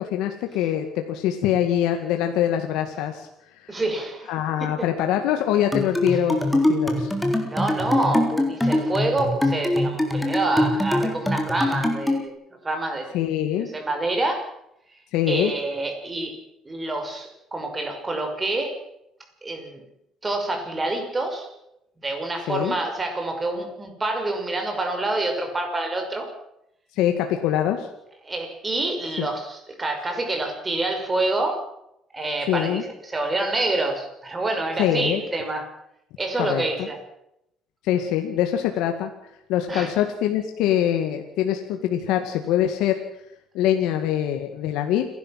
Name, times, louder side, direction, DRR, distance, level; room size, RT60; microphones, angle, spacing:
voice 1, 0.0-3.3 3.5-3.8 4.3-7.1 13.1-13.7 15.1-15.5 22.5-22.7 26.9-27.9 29.2-29.3 32.5-32.8 34.8-35.2 36.4-36.6 37.8-39.1 39.5-43.0 43.5-45.1, left 11 dB, 90° left, 5 dB, 2.1 m, -24 dB
voice 2, 3.7-4.3 4.6-4.9 7.4-12.3 12.6-13.1 13.6-14.5 14.9-15.0 15.3-16.4 16.6-18.8 19.4-19.8 20.2-21.5 22.0-26.3 28.2-31.6 32.1-35.7 36.2-37.0 39.7-39.9, right 2 dB, 20° right, 4 dB, 6.1 m, -27 dB
sound 1, 5.7-12.3, left 1 dB, 5° left, 3.8 m, -23 dB
29.5 x 12.0 x 7.6 m, 0.79 s
cardioid pair, 120°, 0 cm